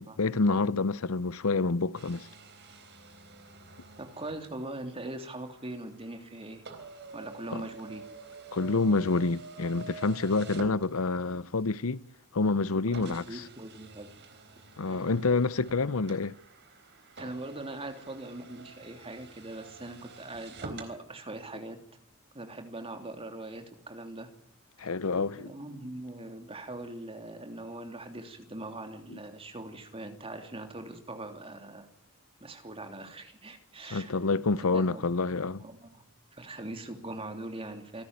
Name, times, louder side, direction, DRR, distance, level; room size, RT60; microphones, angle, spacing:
voice 1, 0.0-2.3 7.5-7.6 8.5-12.0 12.3-13.4 14.8-16.3 24.8-25.5 29.1-29.2 33.9-35.6, left 3 dB, 70° left, 0.8 m, -28 dB
sound 1, 1.9-11.4 12.1-12.2 12.9-21.0, right 3 dB, 55° right, 4.0 m, -48 dB
voice 2, 4.0-6.6 7.1-8.1 12.9-14.1 14.8-15.1 17.2-21.8 22.3-24.3 25.4-31.9 32.4-34.2 34.6-35.1 35.6-36.0 36.3-38.0, right 2 dB, 25° right, 3.2 m, -41 dB
27.5 x 13.0 x 9.7 m
head